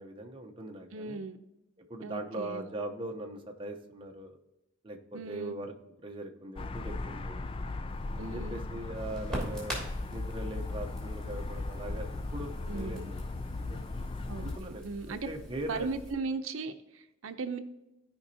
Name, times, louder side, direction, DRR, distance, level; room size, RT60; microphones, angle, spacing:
voice 1, 0.0-1.2 1.9-4.4 4.8-5.7 6.0-7.4 8.2-9.8 10.1-13.3 13.6-13.8 14.4-15.9, right 1 dB, 25° right, 3 dB, 0.8 m, -40 dB
voice 2, 0.9-1.4 2.0-2.7 5.1-5.6 8.2-8.6 12.7-13.1 14.3-15.3 15.7-17.6, right 4 dB, 85° right, 9 dB, 0.6 m, -37 dB
sound 1, 6.6-14.6, left 2 dB, 25° left, 0.3 m, -37 dB
Crackle, 7.9-16.1, equal, 5° left, 2.9 m, -43 dB
15.0 x 5.2 x 2.8 m, 0.96 s
head